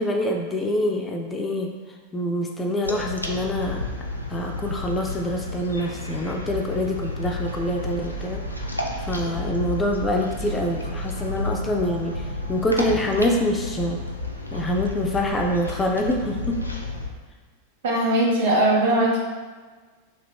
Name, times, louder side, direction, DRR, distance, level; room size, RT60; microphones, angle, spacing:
voice 1, 0.0-1.7 2.1-3.9 4.3-8.4 9.0-14.0 14.5-16.6, left 1 dB, 15° left, 1 dB, 0.3 m, -25 dB
sound 1, 2.8-17.1, left 3 dB, 85° left, 0.4 m, -32 dB
sound 2, 7.4-13.6, right 8 dB, 90° right, 1.1 m, -38 dB
voice 2, 17.8-19.2, right 1 dB, 55° right, -2 dB, 0.7 m, -20 dB
2.9 x 2.9 x 2.9 m, 1.4 s
figure-of-eight pair, 90°, 0 cm